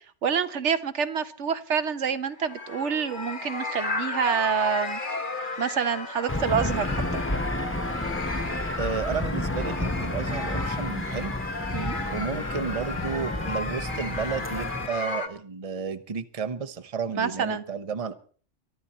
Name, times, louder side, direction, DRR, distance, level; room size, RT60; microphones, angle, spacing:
voice 1, 0.2-5.0 5.6-7.0 11.7-12.0 17.1-17.6, right 7 dB, 70° right, 11 dB, 1.2 m, -27 dB
sound 1, 2.3-15.3, left 3 dB, 45° left, 1.6 m, -34 dB
Aircraft / Engine, 6.3-14.9, left 1 dB, 10° left, 0.9 m, -31 dB
voice 2, 8.8-11.3 12.1-18.1, right 5 dB, 30° right, 8 dB, 1.0 m, -32 dB
23.0 x 12.5 x 4.3 m, 0.43 s
omnidirectional pair, 1.2 m